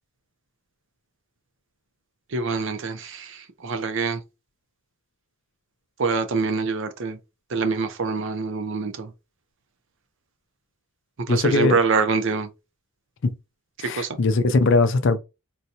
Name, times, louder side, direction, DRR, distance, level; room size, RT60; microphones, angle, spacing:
voice 1, 2.3-4.2 6.0-7.2 7.5-9.1 11.3-12.5 13.9-14.2, right 4 dB, 55° right, 0.5 m, -25 dB
voice 2, 11.3-11.7 13.2-13.3 13.8-15.2, left 3 dB, 55° left, 0.4 m, -20 dB
3.9 x 2.2 x 2.7 m
head